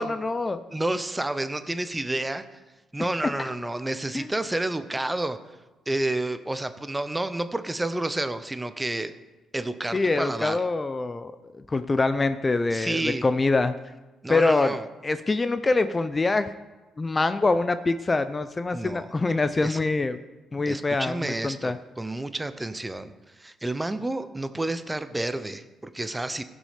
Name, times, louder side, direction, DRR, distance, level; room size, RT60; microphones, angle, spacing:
voice 1, 0.0-0.6 4.1-4.3 9.9-13.7 14.3-14.8 15.0-16.5 17.0-20.2 20.5-21.8, left 3 dB, 25° left, 11 dB, 0.5 m, -25 dB
voice 2, 0.7-2.4 2.9-5.4 5.9-9.1 9.5-10.6 12.7-13.2 14.2-14.9 18.7-19.1 19.6-19.8 20.7-26.4, right 2 dB, 15° right, 11 dB, 0.7 m, -30 dB
15.5 x 6.3 x 5.0 m, 1.1 s
cardioid pair, 90°, 0 cm